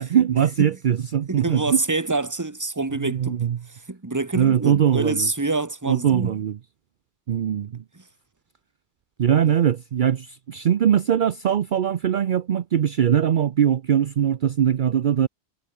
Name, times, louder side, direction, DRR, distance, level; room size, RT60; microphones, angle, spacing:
voice 1, 0.0-1.8 3.0-3.6 4.3-5.3 5.9-6.6 7.3-7.8 9.2-15.3, right 9 dB, 55° right, 0.8 m, -21 dB
voice 2, 1.3-3.4 3.7-6.4 7.9-8.0, right 3 dB, 20° right, 1.3 m, -26 dB
omnidirectional pair, 1.0 m